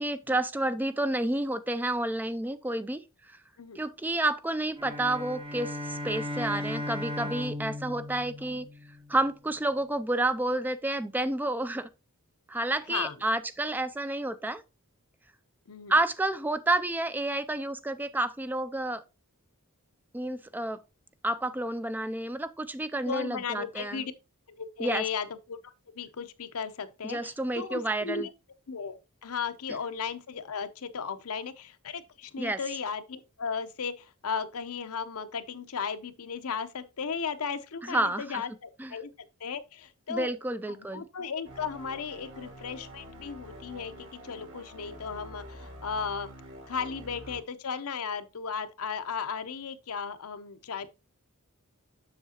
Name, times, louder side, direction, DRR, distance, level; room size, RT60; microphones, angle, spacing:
voice 1, 0.0-3.0 3.8-8.7 9.1-11.9 12.5-14.6 15.9-19.0 20.1-20.8 21.2-24.0 24.8-25.0 27.0-28.3 32.4-32.6 37.9-38.4 38.8-38.9 40.1-41.0, right 2 dB, 10° right, 0.3 m, -30 dB
sound 1, 4.7-9.2, left 1 dB, 25° right, 0.7 m, -36 dB
voice 2, 23.0-24.1 24.6-28.3 28.7-40.3 40.7-46.3 46.7-50.9, left 6 dB, 70° left, 0.7 m, -36 dB
sound 2, 41.4-47.4, equal, 60° right, 2.2 m, -46 dB
7.3 x 6.6 x 2.9 m
head